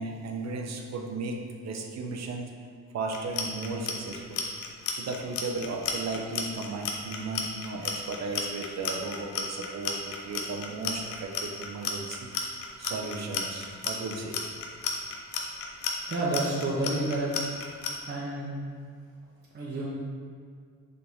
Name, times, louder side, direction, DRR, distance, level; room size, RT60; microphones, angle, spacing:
voice 1, 0.0-2.5 2.9-4.4 5.0-12.3 12.8-14.4, right 3 dB, 60° right, 2 dB, 0.9 m, -35 dB
Clock, 3.1-17.9, left 7 dB, 90° left, 0.8 m, -32 dB
voice 2, 16.1-17.3 18.1-18.5 19.5-19.9, right 2 dB, 35° right, -7 dB, 1.1 m, -29 dB
6.9 x 3.8 x 3.9 m, 2.1 s
cardioid pair, 90°, 30 cm